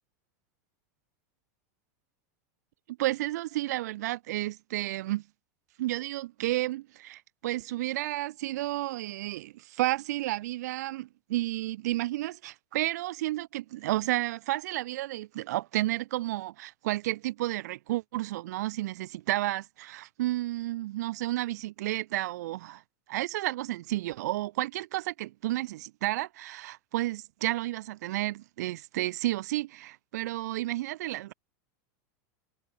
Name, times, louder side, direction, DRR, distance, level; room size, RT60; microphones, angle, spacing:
voice 1, 2.9-5.2 5.8-22.8 23.1-31.3, right 16 dB, 75° right, 2.6 m, -31 dB
supercardioid pair, 135°, 9 cm